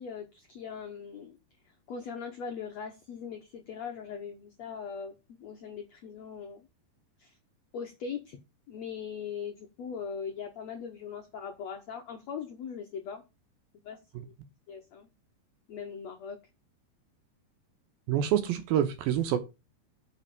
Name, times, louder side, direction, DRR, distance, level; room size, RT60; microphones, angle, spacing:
voice 1, 0.0-1.4 1.6-6.7 7.2-7.4 7.7-8.4 8.7-13.2 13.8-14.3 14.7-15.1 15.7-16.4, left 6 dB, 75° left, 1.5 m, -40 dB
voice 2, 18.1-19.4, right 10 dB, 75° right, 2.6 m, -26 dB
7.6 x 6.0 x 7.4 m
omnidirectional pair, 4.7 m